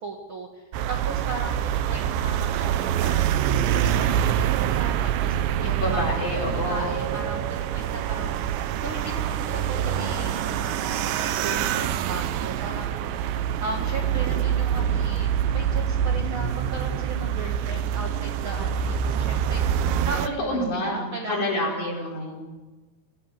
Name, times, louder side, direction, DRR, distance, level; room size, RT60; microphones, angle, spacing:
voice 1, 0.0-5.6 5.9-6.0 6.4-13.0 13.6-19.6 20.0-22.1, right 2 dB, 55° right, 2 dB, 1.5 m, -37 dB
sound 1, 0.7-20.3, right 9 dB, 85° right, 3.2 m, -25 dB
voice 2, 5.6-6.9 20.4-22.4, left 1 dB, 45° left, -2 dB, 6.0 m, -28 dB
23.0 x 16.0 x 7.9 m, 1.2 s
omnidirectional pair, 5.0 m